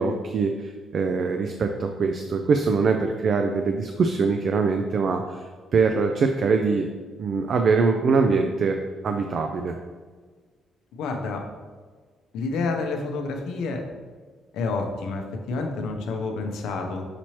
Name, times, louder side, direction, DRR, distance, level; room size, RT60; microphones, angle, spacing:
voice 1, 0.0-5.4 5.7-6.9 7.2-8.8 9.0-9.8, right 4 dB, 55° right, 5 dB, 0.3 m, -23 dB
voice 2, 11.0-11.4 12.3-13.8 14.5-17.0, left 3 dB, 85° left, 3 dB, 0.6 m, -29 dB
5.8 x 2.8 x 3.0 m, 1.5 s
cardioid pair, 90°, 0 cm